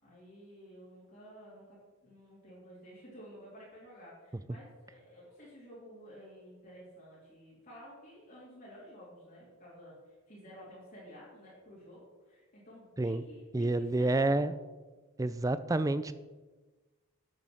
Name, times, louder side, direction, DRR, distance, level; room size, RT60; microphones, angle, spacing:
voice 1, 0.0-14.5, equal, 40° left, -7 dB, 2.9 m, -52 dB
voice 2, 13.5-14.5 15.2-16.1, right 2 dB, 15° right, 13 dB, 0.3 m, -28 dB
9.3 x 7.6 x 6.3 m, 1.3 s
head